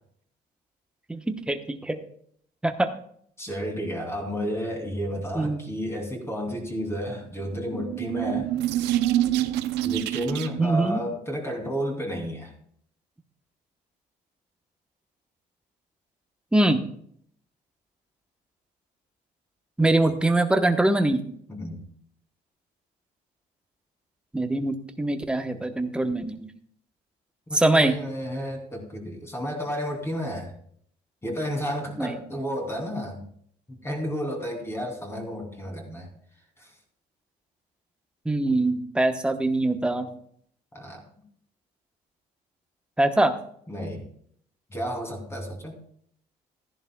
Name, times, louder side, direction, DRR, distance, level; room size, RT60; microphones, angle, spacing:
voice 1, 1.1-2.0 2.6-2.9 5.3-5.6 10.6-11.0 16.5-16.8 19.8-21.3 24.3-26.5 27.5-28.0 32.0-32.2 38.2-40.1 43.0-43.3, right 2 dB, 5° right, 6 dB, 1.0 m, -23 dB
voice 2, 3.4-8.5 9.8-12.5 21.5-21.8 27.5-30.5 31.2-33.3 33.7-36.1 36.6-36.7 40.7-41.0 43.7-44.0 44.7-45.8, equal, 15° left, 1 dB, 2.9 m, -32 dB
sound 1, 7.5-10.8, right 13 dB, 85° right, 0.5 m, -26 dB
14.5 x 10.5 x 2.3 m, 0.64 s
cardioid pair, 110°, 17 cm